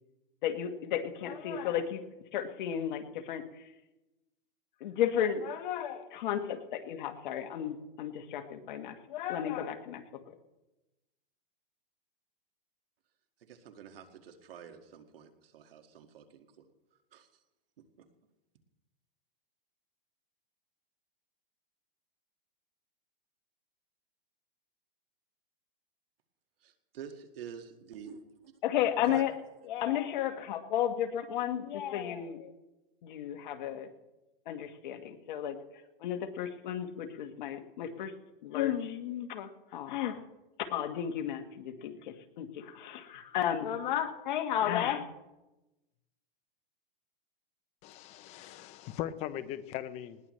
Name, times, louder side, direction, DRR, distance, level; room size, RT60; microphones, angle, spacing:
voice 1, 0.4-2.0 2.3-3.4 4.8-10.4 28.6-29.3 29.6-32.5 33.0-33.9 34.5-35.6 36.0-38.1 38.4-40.2 40.6-45.1, left 10 dB, 55° left, 6 dB, 1.6 m, -33 dB
voice 2, 13.4-16.7 17.1-17.3 18.0-18.1 26.6-28.2 29.0-29.3, right 7 dB, 75° right, 6 dB, 2.0 m, -48 dB
voice 3, 47.8-50.2, left 12 dB, 25° left, 13 dB, 0.6 m, -39 dB
19.5 x 17.5 x 3.2 m, 1.0 s
hypercardioid pair, 150°, 29 cm